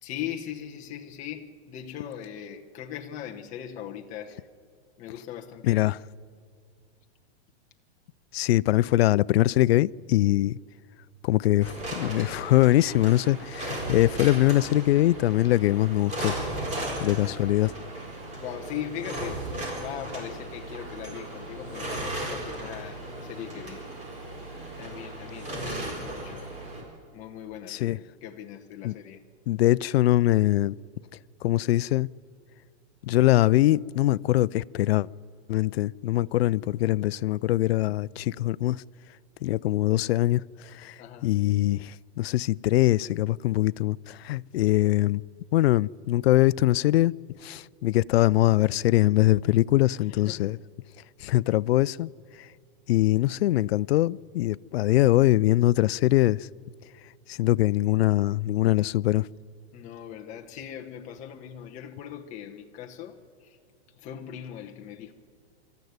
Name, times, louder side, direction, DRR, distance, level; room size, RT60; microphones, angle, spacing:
voice 1, 0.0-4.4 5.0-5.9 17.0-17.6 18.4-23.9 24.8-26.4 27.1-29.2 41.0-41.3 50.1-50.6 59.7-63.6 63.9-65.1, left 10 dB, 20° left, 1.0 m, -40 dB
voice 2, 8.3-10.6 11.2-16.3 17.0-17.7 27.7-28.0 28.8-28.9 29.5-30.8 31.4-32.1 33.0-35.1 35.5-38.8 39.4-40.4 40.7-40.9 41.2-45.2 45.5-47.1 47.4-50.6 51.2-52.1 52.9-56.5 57.3-59.3, left 16 dB, 70° left, 0.5 m, -22 dB
sound 1, 11.6-26.8, right 1 dB, 20° right, 4.4 m, -36 dB
25.0 x 13.5 x 9.4 m
supercardioid pair, 160°, 33 cm